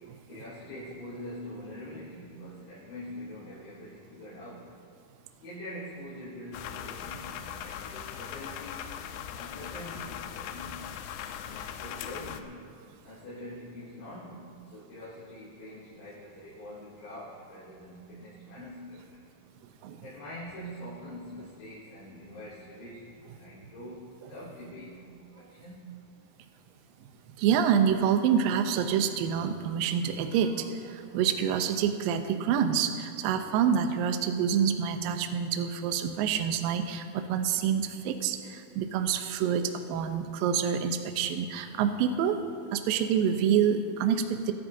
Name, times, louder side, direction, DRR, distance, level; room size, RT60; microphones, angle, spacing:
voice 1, 0.3-4.7 5.4-8.9 9.3-10.9 11.5-12.7 13.0-19.3 20.0-25.9, left 1 dB, 70° left, -12 dB, 6.0 m, -44 dB
sound 1, 6.5-12.4, left 9 dB, 85° left, 2.8 m, -40 dB
voice 2, 27.4-42.4 42.7-44.5, right 8 dB, 80° right, 7 dB, 2.0 m, -27 dB
22.5 x 12.5 x 2.7 m, 2.6 s
omnidirectional pair, 5.0 m